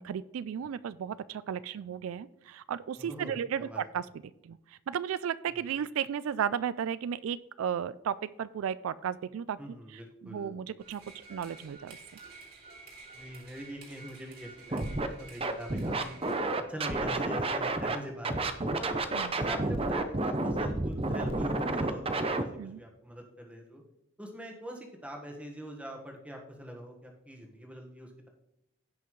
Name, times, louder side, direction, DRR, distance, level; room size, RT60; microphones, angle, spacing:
voice 1, 0.0-4.1 4.4-9.6 9.9-11.0 11.3-12.0 19.1-19.4 22.6-22.8, right 8 dB, 80° right, 17 dB, 0.3 m, -34 dB
voice 2, 3.0-3.8 9.6-10.6 13.1-16.3 16.7-19.0 19.3-23.8 24.2-28.3, equal, 5° right, 1 dB, 1.4 m, -44 dB
sound 1, 10.8-16.3, right 4 dB, 45° right, 2.4 m, -51 dB
Scratching (performance technique), 14.7-15.1 15.4-18.0 18.2-22.4, right 2 dB, 25° right, 0.6 m, -30 dB
16.0 x 5.7 x 3.1 m, 0.83 s
head